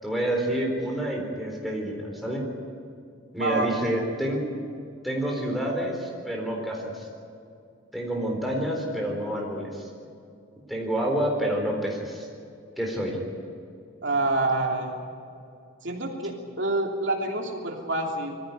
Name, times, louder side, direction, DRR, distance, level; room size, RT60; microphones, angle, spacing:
voice 1, 0.0-2.4 3.3-4.4 5.0-7.1 7.9-9.9 10.7-12.3 12.8-13.2, right 1 dB, ahead, -1 dB, 4.1 m, -28 dB
voice 2, 14.0-15.0 15.8-18.4, right 2 dB, 60° right, 0 dB, 3.1 m, -27 dB
21.5 x 15.0 x 9.6 m, 2.4 s
head